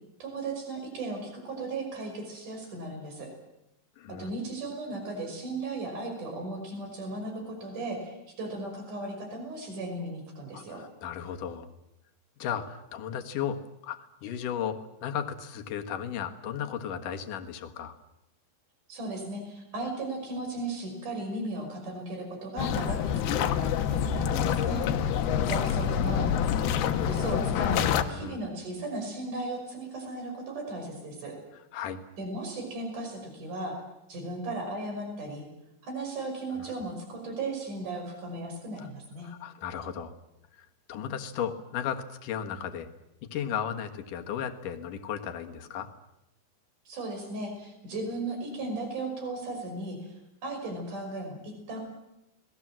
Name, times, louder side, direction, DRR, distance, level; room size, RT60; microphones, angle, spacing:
voice 1, 0.2-3.3 4.1-10.8 18.9-24.8 25.4-26.7 27.1-31.4 32.2-33.8 34.1-35.4 35.8-39.3 46.9-50.2 50.4-51.8, right 2 dB, 55° right, 3 dB, 7.0 m, -36 dB
voice 2, 4.0-4.3 10.5-11.7 12.4-18.0 24.4-24.9 28.1-28.4 31.7-32.0 36.6-36.8 38.8-38.9 39.2-40.1 40.5-42.9 43.3-45.9, left 8 dB, 60° left, 6 dB, 2.8 m, -35 dB
sound 1, 22.6-28.0, left 8 dB, 80° left, 3.1 m, -27 dB
29.5 x 20.0 x 7.5 m, 0.88 s
omnidirectional pair, 4.5 m